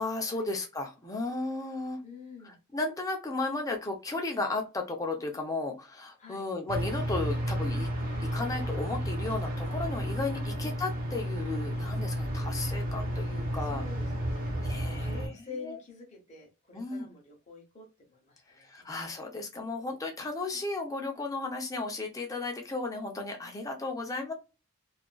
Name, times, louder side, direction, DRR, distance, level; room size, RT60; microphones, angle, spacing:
voice 1, 0.0-2.0 2.4-7.9 8.2-13.8 14.6-15.2 15.6-15.8 16.7-17.1 18.6-24.3, left 3 dB, 15° left, 2 dB, 0.6 m, -34 dB
voice 2, 2.0-2.6 6.2-6.5 10.4-10.7 13.6-19.0, left 4 dB, 35° left, 1 dB, 0.9 m, -47 dB
sound 1, 6.7-15.3, equal, 40° right, 1.1 m, -32 dB
2.8 x 2.5 x 2.2 m, 0.29 s
head